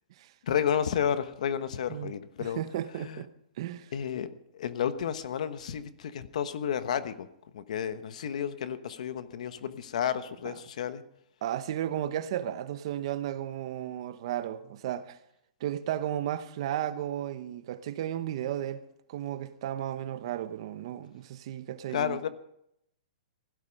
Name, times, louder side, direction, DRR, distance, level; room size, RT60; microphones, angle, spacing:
voice 1, 0.4-2.6 3.0-3.2 3.9-4.3 4.5-7.3 7.5-11.0 21.9-22.3, left 8 dB, 60° left, 1.2 m, -31 dB
voice 2, 2.4-3.3 3.6-3.9 10.4-10.6 11.4-15.2 15.6-18.8 19.1-22.3, right 11 dB, 40° right, 0.8 m, -34 dB
16.0 x 12.5 x 5.3 m
hypercardioid pair, 175°, 4 cm